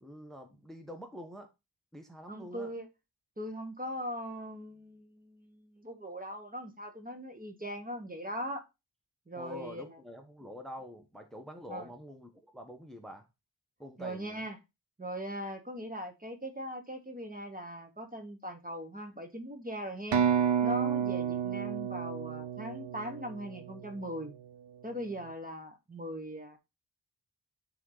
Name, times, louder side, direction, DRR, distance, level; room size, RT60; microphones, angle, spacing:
voice 1, 0.0-1.5 1.9-2.7 9.3-13.3 13.8-14.5, equal, ahead, 1.0 m, -46 dB
voice 2, 2.3-2.9 3.4-8.6 9.3-10.0 11.7-11.9 14.0-14.6 15.0-20.3 20.6-24.4 24.8-26.6, equal, 20° right, 1.1 m, -40 dB
sound 1, 20.1-23.9, right 8 dB, 85° right, 0.8 m, -30 dB
9.2 x 3.5 x 3.9 m
wide cardioid pair, 115°, 43 cm